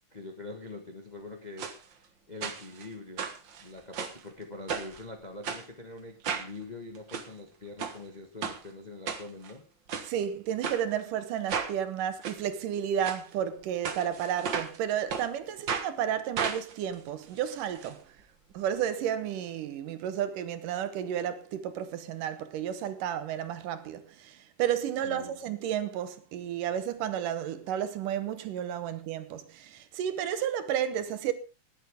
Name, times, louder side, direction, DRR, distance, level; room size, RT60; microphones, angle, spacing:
voice 1, 0.1-3.3 3.6-9.6 25.0-25.4, left 2 dB, 50° left, 0.5 m, -44 dB
sound 1, 1.6-1.8 2.4-2.9 3.2-4.2 4.7-5.0 5.4-5.6 6.2-6.5 6.9-7.3 7.8-8.0 8.4-8.6 9.1-9.5 9.9-10.1 10.6-10.8 11.5-11.7 12.2-12.4 13.0-13.2 13.8-14.8 15.1-15.3 15.7-15.9 16.4-17.9 18.2-18.3 18.5-18.6, right 6 dB, 50° right, 1.5 m, -34 dB
voice 2, 10.0-18.0 18.5-31.3, right 9 dB, 80° right, 2.7 m, -32 dB
20.0 x 8.3 x 3.6 m
omnidirectional pair, 3.8 m